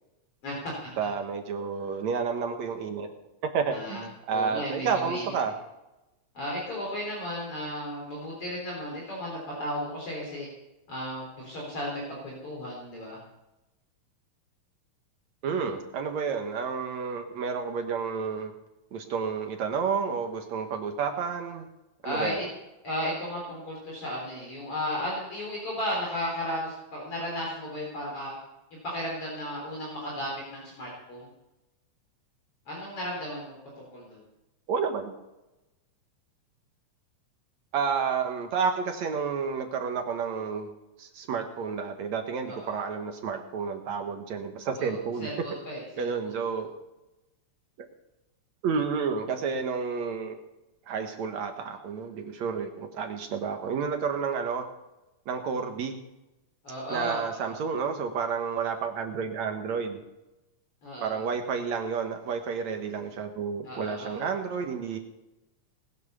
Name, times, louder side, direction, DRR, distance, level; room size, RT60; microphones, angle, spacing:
voice 1, 0.4-1.1 3.7-5.3 6.3-10.5 10.9-13.2 22.0-22.4 22.8-28.3 28.7-31.3 32.7-34.2 42.4-42.7 44.8-46.3 56.6-57.6 60.8-61.2 63.6-64.3, equal, 45° left, -3 dB, 4.5 m, -35 dB
voice 2, 1.0-3.1 3.4-4.0 4.3-5.5 15.4-18.5 18.9-21.7 22.0-22.5 34.7-35.1 37.7-40.7 41.0-45.5 46.0-46.7 48.6-50.4 50.9-54.7 55.3-56.0 56.9-60.0 61.0-65.0, right 6 dB, 65° right, 5 dB, 2.5 m, -30 dB
19.5 x 9.3 x 6.8 m, 0.97 s
omnidirectional pair, 3.5 m